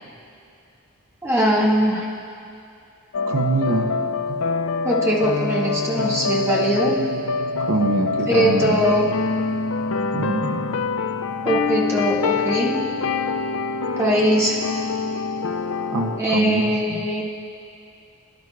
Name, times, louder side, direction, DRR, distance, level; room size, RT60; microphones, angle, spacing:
voice 1, 1.2-2.0 4.8-7.0 8.3-9.1 11.4-12.8 14.0-14.6 16.2-17.2, right 1 dB, 15° right, -6 dB, 1.9 m, -21 dB
sound 1, 3.1-16.2, left 4 dB, 75° left, 0.4 m, -25 dB
voice 2, 3.3-3.9 4.3-4.4 7.6-8.8 10.1-10.8 15.9-17.0, right 2 dB, 75° right, 3 dB, 0.8 m, -24 dB
24.5 x 10.5 x 2.4 m, 2.5 s
head